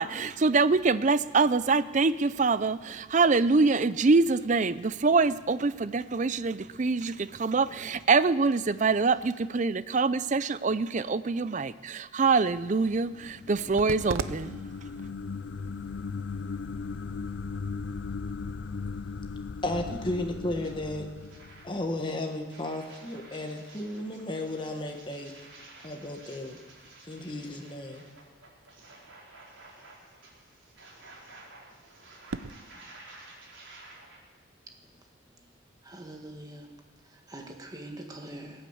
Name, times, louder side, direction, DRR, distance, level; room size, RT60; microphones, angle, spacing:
voice 1, 0.0-14.6, right 4 dB, 35° right, 15 dB, 0.5 m, -25 dB
sound 1, 12.9-22.2, left 4 dB, 60° left, 0.4 m, -38 dB
sound 2, 13.4-32.5, right 4 dB, 85° right, 0.6 m, -46 dB
voice 2, 19.6-21.1 21.6-25.3 25.8-26.6 27.0-28.0, left 1 dB, 25° left, 4 dB, 1.2 m, -34 dB
sound 3, 20.6-20.7 21.1-34.2, right 2 dB, 70° right, 4.3 m, -52 dB
voice 3, 35.8-36.7 37.0-38.7, right 1 dB, 20° right, 2 dB, 1.6 m, -44 dB
20.5 x 8.7 x 7.9 m, 1.3 s
head